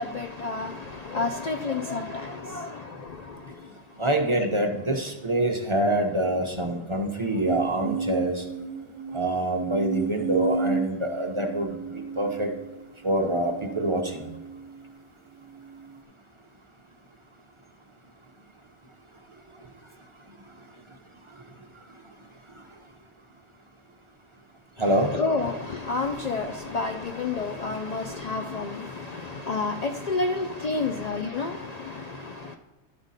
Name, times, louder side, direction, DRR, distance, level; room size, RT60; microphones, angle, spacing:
voice 1, 0.0-2.8 24.8-32.5, left 3 dB, 80° left, 0.3 m, -30 dB
voice 2, 4.0-8.4 9.1-11.8 12.2-12.5 13.0-14.3 24.8-25.1, right 1 dB, 30° right, 0.6 m, -25 dB
sound 1, 7.5-14.9 15.5-16.0, right 5 dB, 80° right, 1.0 m, -33 dB
11.5 x 5.1 x 4.0 m
omnidirectional pair, 1.3 m